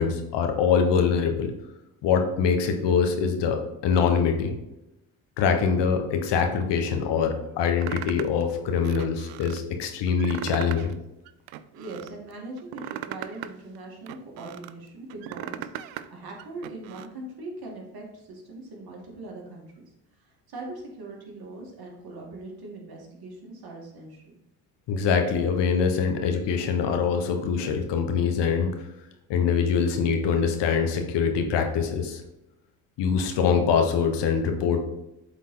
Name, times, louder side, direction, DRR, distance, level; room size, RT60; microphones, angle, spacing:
voice 1, 0.0-1.5 2.0-4.5 5.4-10.9 24.9-28.7 29.3-32.2 33.0-34.9, left 6 dB, 70° left, 5 dB, 1.3 m, -24 dB
sound 1, 7.8-8.4 8.8-9.6 10.1-10.9 11.2-12.1 12.6-14.7 15.1-16.1 16.4-17.1, right 12 dB, 85° right, 0.5 m, -38 dB
voice 2, 11.7-19.8 20.5-24.2, right 2 dB, 55° right, -1 dB, 2.5 m, -41 dB
8.1 x 4.1 x 3.9 m, 0.93 s
supercardioid pair, 65°, 43 cm